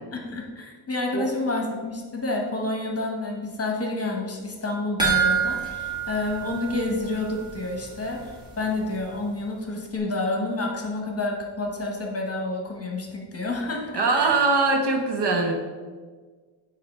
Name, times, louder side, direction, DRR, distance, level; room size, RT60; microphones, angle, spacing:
voice 1, 0.1-14.4, left 2 dB, 30° left, 1 dB, 1.2 m, -29 dB
sound 1, 5.0-7.5 7.8-7.9 8.4-8.5, right 6 dB, 10° right, 1.8 m, -26 dB
voice 2, 13.9-15.5, right 3 dB, 55° right, 3 dB, 1.0 m, -22 dB
7.9 x 2.8 x 5.4 m, 1.5 s
wide cardioid pair, 105°, 47 cm